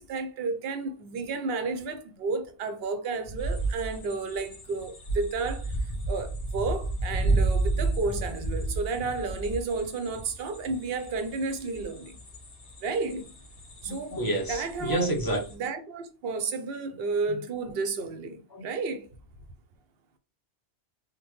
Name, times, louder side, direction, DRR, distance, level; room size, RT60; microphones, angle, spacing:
voice 1, 0.0-12.2 12.8-13.3 13.8-15.1 15.5-19.2, right 4 dB, 65° right, 0.8 m, -32 dB
sound 1, 3.4-15.5, right 2 dB, 50° left, 1.5 m, -32 dB
voice 2, 13.8-15.4 17.3-17.4 18.5-18.7, right 1 dB, 20° left, 0.8 m, -29 dB
3.5 x 2.1 x 3.1 m
omnidirectional pair, 1.2 m